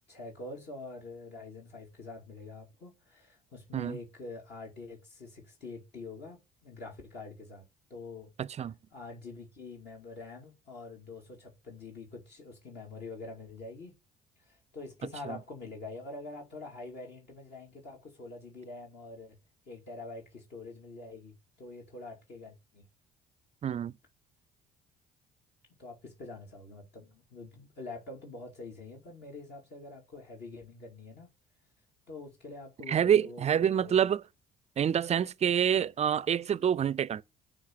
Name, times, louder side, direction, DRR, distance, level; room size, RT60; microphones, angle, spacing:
voice 1, 0.1-7.6 7.9-8.3 8.9-13.9 14.5-19.4 19.7-22.8 25.8-31.3 32.1-34.0, left 3 dB, 55° left, 2.5 m, -45 dB
voice 2, 8.4-8.7 15.3-15.4 23.6-23.9 32.9-34.2 34.8-37.2, right 9 dB, 35° right, 0.4 m, -27 dB
6.4 x 3.7 x 5.8 m
hypercardioid pair, 65°, 20 cm